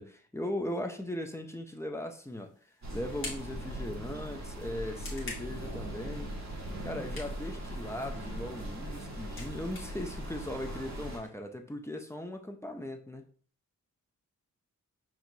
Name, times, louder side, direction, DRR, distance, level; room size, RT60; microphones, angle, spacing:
voice 1, 0.0-2.5 2.9-6.3 6.8-13.3, left 1 dB, 10° left, 0.3 m, -38 dB
sound 1, 2.0-11.3, left 2 dB, 40° left, 1.3 m, -50 dB
sound 2, 2.8-11.2, right 1 dB, 55° right, 1.1 m, -40 dB
5.9 x 2.9 x 2.6 m
wide cardioid pair, 160°, 34 cm